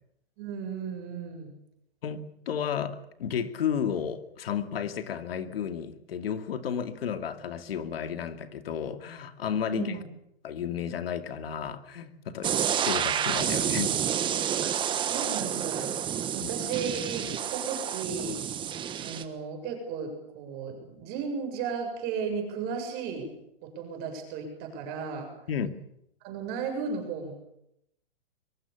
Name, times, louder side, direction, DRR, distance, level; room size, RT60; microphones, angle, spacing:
voice 1, 0.4-1.5 9.7-10.0 14.6-14.8 15.0-18.4 19.0-23.3 23.6-25.3 26.2-27.3, right 6 dB, 30° right, 4 dB, 7.4 m, -35 dB
voice 2, 2.0-10.0 10.4-12.5 12.8-14.0 16.4-16.5 25.5-25.7, left 8 dB, 70° left, 9 dB, 2.6 m, -32 dB
sound 1, 12.4-19.2, right 9 dB, 15° right, 1.5 m, -29 dB
23.5 x 23.0 x 7.1 m, 0.76 s
hypercardioid pair, 150°, 31 cm